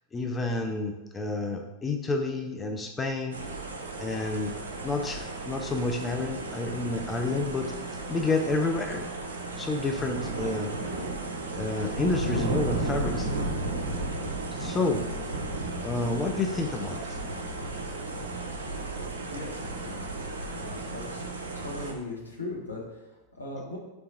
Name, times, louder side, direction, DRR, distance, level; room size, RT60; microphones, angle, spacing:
voice 1, 0.1-3.4 4.0-4.5 4.8-7.7 8.1-9.1 9.6-10.7 11.5-13.3 14.6-15.0 15.8-17.1, left 3 dB, 15° left, 4 dB, 0.3 m, -29 dB
sound 1, 3.3-21.9, right 2 dB, 70° right, 0.5 m, -34 dB
voice 2, 19.3-21.2 21.5-23.8, left 2 dB, 80° left, -3 dB, 0.9 m, -39 dB
3.3 x 2.8 x 3.9 m, 1.0 s
figure-of-eight pair, 90°, 0 cm